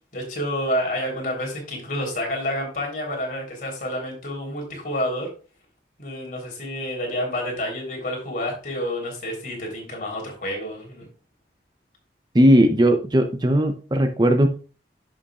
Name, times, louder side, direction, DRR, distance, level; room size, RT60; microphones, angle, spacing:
voice 1, 0.1-5.3 6.0-11.1, equal, 50° left, 0 dB, 3.8 m, -29 dB
voice 2, 12.3-14.5, equal, 25° right, 6 dB, 0.7 m, -17 dB
11.0 x 7.1 x 2.4 m, 0.36 s
head